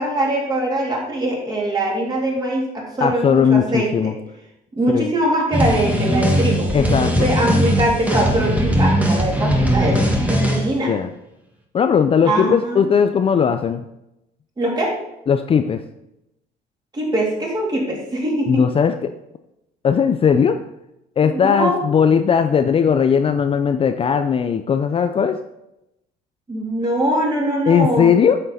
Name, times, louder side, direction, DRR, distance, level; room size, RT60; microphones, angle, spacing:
voice 1, 0.0-4.1 4.7-10.9 12.3-12.8 14.6-14.9 16.9-18.6 21.2-21.8 26.5-28.1, right 1 dB, 25° right, -3 dB, 3.1 m, -22 dB
voice 2, 3.0-4.1 4.9-5.1 6.7-7.3 10.9-11.1 11.7-13.9 15.3-15.8 18.5-19.1 19.8-20.6 21.2-25.4 27.7-28.4, left 7 dB, 35° left, 8 dB, 0.5 m, -18 dB
sound 1, 5.5-10.7, equal, 10° right, 1.6 m, -19 dB
9.0 x 6.6 x 4.1 m, 0.86 s
cardioid pair, 110°, 17 cm